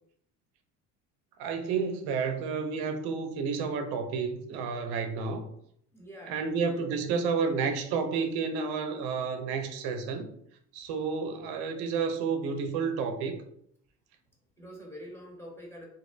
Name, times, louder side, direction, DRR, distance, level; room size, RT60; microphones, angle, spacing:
voice 1, 1.4-5.4 6.3-10.3 10.7-13.4, right 5 dB, 65° right, 0.5 m, -30 dB
voice 2, 5.9-6.8 14.6-15.9, equal, 5° left, 0.9 m, -46 dB
2.6 x 2.0 x 2.4 m
supercardioid pair, 75°, 41 cm